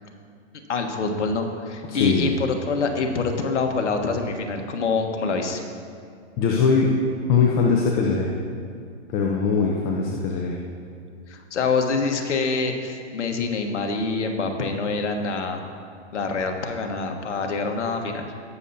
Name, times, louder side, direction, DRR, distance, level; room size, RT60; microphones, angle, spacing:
voice 1, 0.7-5.7 11.3-15.6 16.1-18.3, left 4 dB, 80° left, 4 dB, 1.4 m, -25 dB
voice 2, 1.9-2.3 6.4-6.9 7.3-8.3 9.1-10.6, left 5 dB, 25° left, -1 dB, 0.8 m, -21 dB
19.5 x 7.0 x 2.8 m, 2.3 s
hypercardioid pair, 135°, 35 cm